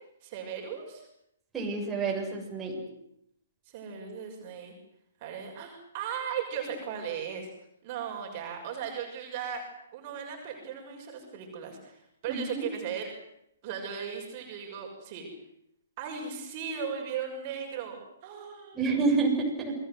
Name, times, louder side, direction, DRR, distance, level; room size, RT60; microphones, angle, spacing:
voice 1, 0.2-1.1 3.6-4.7 5.2-7.5 7.8-9.6 9.9-13.1 13.6-15.3 16.0-18.8, right 7 dB, 35° right, 2 dB, 6.4 m, -37 dB
voice 2, 1.5-2.8 12.3-12.7 18.7-19.8, right 4 dB, 10° right, -2 dB, 7.2 m, -28 dB
28.5 x 21.0 x 8.0 m, 0.78 s
figure-of-eight pair, 125°, 0 cm